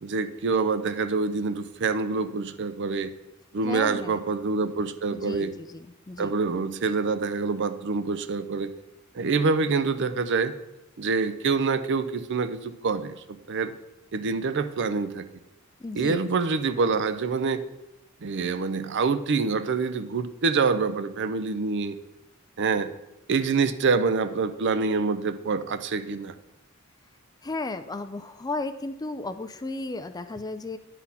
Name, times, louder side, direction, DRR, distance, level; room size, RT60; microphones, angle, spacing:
voice 1, 0.0-3.1 3.5-5.5 6.2-8.7 9.1-10.5 11.0-13.7 14.1-15.2 15.9-17.6 18.2-22.0 22.6-22.9 23.3-26.3, right 4 dB, 55° right, 12 dB, 0.5 m, -26 dB
voice 2, 3.6-4.2 5.1-6.3 15.8-16.2 27.4-30.8, left 2 dB, 20° left, 10 dB, 0.4 m, -34 dB
10.0 x 4.2 x 5.5 m, 0.93 s
head